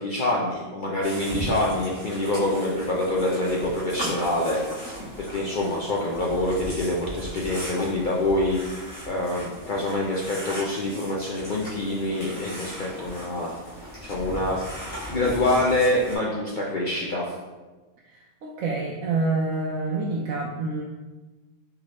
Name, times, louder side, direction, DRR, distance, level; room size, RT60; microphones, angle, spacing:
voice 1, 0.0-4.6 5.2-13.5 14.0-14.6 15.1-17.2, left 1 dB, 60° left, -4 dB, 0.5 m, -26 dB
sound 1, 1.0-16.2, equal, 85° left, 1.9 m, -37 dB
voice 2, 18.4-20.8, right 3 dB, 75° right, -4 dB, 1.0 m, -27 dB
4.7 x 3.0 x 3.0 m, 1.2 s
omnidirectional pair, 1.4 m